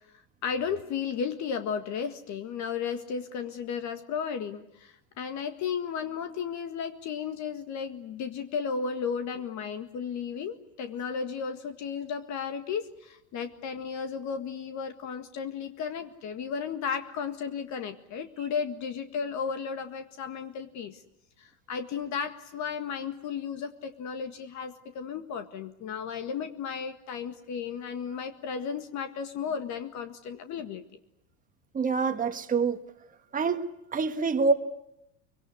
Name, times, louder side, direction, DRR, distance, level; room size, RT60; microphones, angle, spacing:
voice 1, 0.1-21.0 21.4-30.8, left 6 dB, 40° left, 1.8 m, -34 dB
voice 2, 31.7-32.8 33.3-33.6 33.9-34.5, right 4 dB, 20° right, 1.6 m, -26 dB
24.0 x 22.5 x 9.6 m
hypercardioid pair, 110°, 42 cm